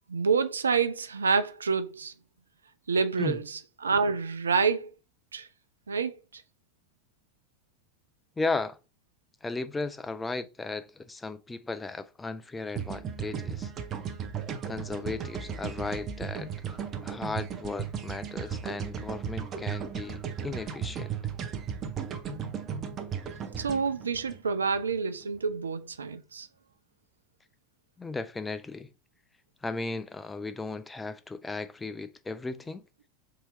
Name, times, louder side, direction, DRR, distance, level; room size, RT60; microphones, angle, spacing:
voice 1, 0.1-2.1 2.9-4.9 5.3-5.5 5.9-6.4 23.6-26.5, right 5 dB, 75° right, 0.3 m, -28 dB
voice 2, 8.4-8.8 9.4-13.7 14.7-21.1 28.0-28.9 29.6-32.8, left 3 dB, 15° left, 0.4 m, -35 dB
sound 1, 12.7-25.0, right 7 dB, 35° right, 0.7 m, -36 dB
3.7 x 2.8 x 4.2 m
figure-of-eight pair, 80°, 0 cm